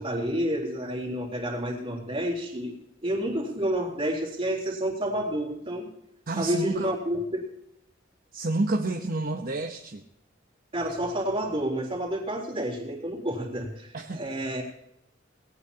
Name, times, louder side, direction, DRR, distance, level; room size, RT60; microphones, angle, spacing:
voice 1, 0.0-2.8 3.0-5.9 6.4-7.4 10.7-14.6, equal, 30° right, 0 dB, 3.6 m, -29 dB
voice 2, 6.3-6.9 8.3-10.0 13.9-14.2, right 2 dB, 50° right, 4 dB, 1.0 m, -29 dB
19.5 x 17.5 x 2.9 m, 0.79 s
head